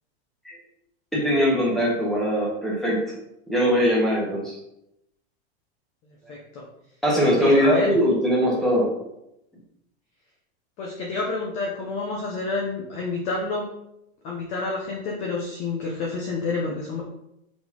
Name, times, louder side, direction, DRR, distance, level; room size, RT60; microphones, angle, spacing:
voice 1, 1.1-3.1 3.5-4.5 7.0-8.9, equal, ahead, -5 dB, 1.5 m, -21 dB
voice 2, 6.3-6.6 7.1-7.9 10.8-13.6 14.2-17.0, left 3 dB, 20° left, -1 dB, 0.7 m, -29 dB
5.3 x 4.2 x 4.6 m, 0.83 s
supercardioid pair, 170°, 32 cm